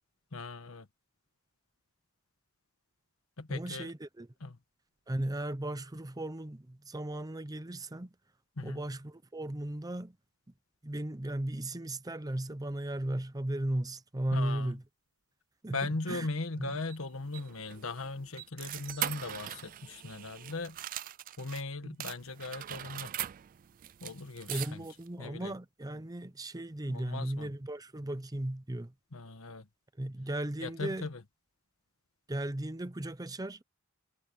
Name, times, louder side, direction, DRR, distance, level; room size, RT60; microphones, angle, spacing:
voice 1, 0.3-0.9 3.4-3.9 4.4-4.6 8.6-8.8 14.3-14.8 15.7-20.8 21.4-23.1 24.0-24.9 25.2-25.5 26.9-27.5 29.1-29.7 30.6-31.2, left 3 dB, 70° left, 1.5 m, -39 dB
voice 2, 3.5-4.3 5.1-8.1 8.6-10.2 10.8-14.8 15.6-16.3 16.6-16.7 21.8-22.0 24.5-28.9 30.0-31.1 32.3-33.6, right 1 dB, 20° right, 0.7 m, -36 dB
sound 1, 16.9-21.6 22.0-25.1, right 13 dB, 40° right, 0.3 m, -41 dB
head